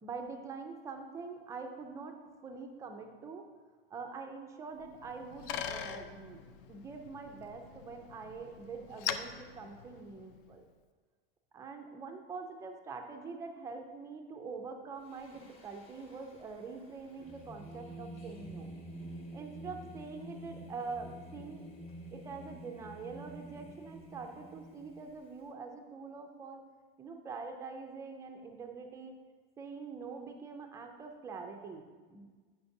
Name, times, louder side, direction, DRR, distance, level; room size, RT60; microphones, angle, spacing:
voice 1, 0.0-3.4 3.9-10.7 11.5-18.7 19.3-21.6 22.1-26.6 27.0-29.2 29.6-32.3, right 4 dB, 10° right, 4 dB, 0.3 m, -44 dB
Bicycle, 4.8-10.5, left 8 dB, 60° left, 0.5 m, -42 dB
Singing, 15.0-25.4, right 1 dB, 20° left, 1.0 m, -49 dB
8.1 x 5.7 x 2.6 m, 1.5 s
supercardioid pair, 140°, 31 cm